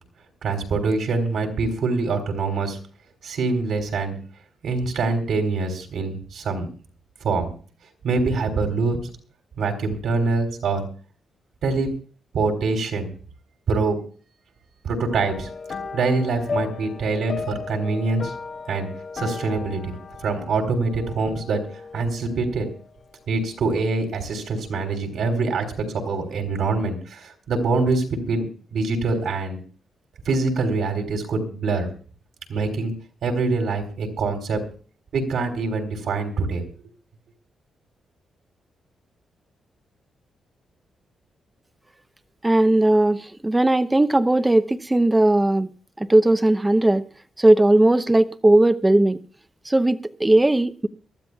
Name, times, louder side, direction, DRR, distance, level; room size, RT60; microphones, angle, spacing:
voice 1, 0.4-2.8 3.2-4.1 4.6-6.7 7.2-7.5 8.0-9.1 9.6-10.8 11.6-11.9 12.3-13.1 13.7-14.0 14.8-15.5 15.9-18.3 18.7-18.9 19.1-21.6 21.9-22.7 23.3-29.6 30.3-31.9 32.5-32.9 33.2-34.6 35.1-36.6, right 3 dB, 75° right, 4 dB, 3.4 m, -24 dB
sound 1, 15.1-24.7 24.9-25.3 25.7-25.8, left 4 dB, 50° left, 1.3 m, -36 dB
voice 2, 42.4-45.7 46.0-47.1 47.4-49.2 49.6-50.9, right 1 dB, 15° right, 12 dB, 0.7 m, -18 dB
23.5 x 13.0 x 2.3 m, 0.40 s
cardioid pair, 90°, 0 cm